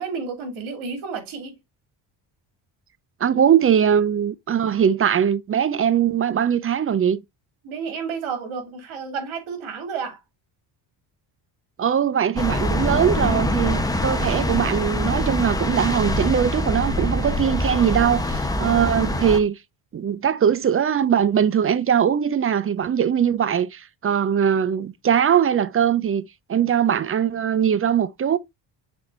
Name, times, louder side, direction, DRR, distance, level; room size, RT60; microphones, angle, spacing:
voice 1, 0.0-1.6 7.6-10.2, right 5 dB, 80° right, 2.6 m, -31 dB
voice 2, 3.2-7.2 11.8-19.6 19.9-28.4, right 8 dB, 30° right, 0.5 m, -21 dB
sound 1, 12.4-19.4, left 1 dB, 10° left, 1.1 m, -24 dB
6.3 x 4.2 x 3.7 m
cardioid pair, 95°, 47 cm